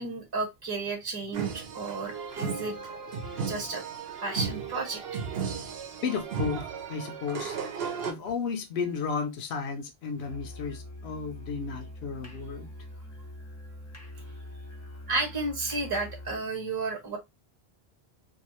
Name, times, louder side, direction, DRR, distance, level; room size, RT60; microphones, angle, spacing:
voice 1, 0.0-2.8 3.5-3.8 4.2-5.0 15.1-17.2, right 3 dB, 25° right, 0.9 m, -32 dB
sound 1, 1.3-8.1, right 6 dB, 75° right, 0.9 m, -35 dB
voice 2, 6.0-6.6 6.9-7.6 8.1-12.7, left 5 dB, 80° left, 0.9 m, -33 dB
Musical instrument, 10.2-16.5, left 1 dB, 25° left, 0.4 m, -44 dB
2.7 x 2.3 x 2.9 m
omnidirectional pair, 1.0 m